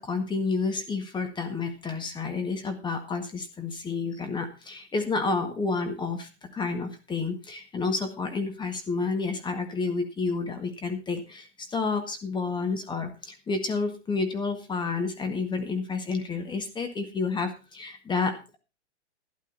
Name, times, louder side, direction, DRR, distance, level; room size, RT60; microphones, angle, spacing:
voice 1, 0.0-18.6, left 4 dB, 15° left, 6 dB, 1.8 m, -30 dB
12.5 x 11.0 x 4.1 m, 0.30 s
hypercardioid pair, 130°, 34 cm